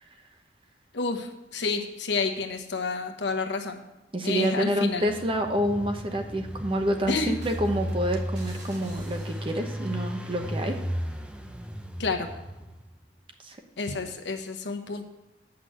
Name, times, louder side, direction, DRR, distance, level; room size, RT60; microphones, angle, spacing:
voice 1, 0.9-3.8 4.2-5.1 7.1-7.4 12.0-12.3 13.8-15.0, left 4 dB, 75° left, 5 dB, 1.0 m, -29 dB
voice 2, 4.1-10.8 13.4-13.6, equal, 30° right, 5 dB, 1.0 m, -28 dB
Engine, 4.9-12.9, equal, 5° right, 0.6 m, -35 dB
sound 1, 7.4-9.7, right 1 dB, 70° right, 2.6 m, -47 dB
8.3 x 5.9 x 7.7 m, 1.0 s
head